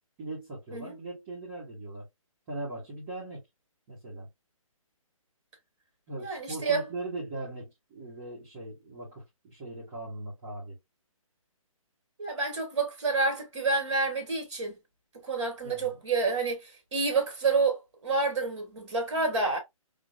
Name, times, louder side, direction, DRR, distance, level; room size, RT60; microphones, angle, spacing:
voice 1, 0.2-2.1 2.5-3.4 3.9-4.3 6.1-10.7 15.6-16.0, right 2 dB, 25° right, 2.0 m, -40 dB
voice 2, 6.2-6.8 12.2-14.8 15.2-17.8 18.0-19.6, right 3 dB, 55° right, 2.0 m, -28 dB
3.7 x 3.1 x 2.5 m
hypercardioid pair, 150°, 18 cm